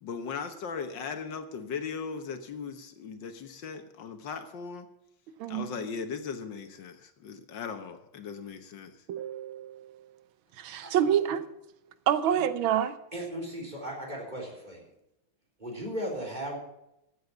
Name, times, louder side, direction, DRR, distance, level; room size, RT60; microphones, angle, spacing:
voice 1, 0.0-4.9 5.5-9.1, left 5 dB, 65° left, 1.8 m, -38 dB
voice 2, 9.1-10.1 10.6-11.4 12.1-13.0, right 9 dB, 85° right, 1.6 m, -27 dB
voice 3, 13.1-14.8 15.6-16.6, equal, 20° right, 3.9 m, -36 dB
14.5 x 8.0 x 7.1 m
omnidirectional pair, 2.2 m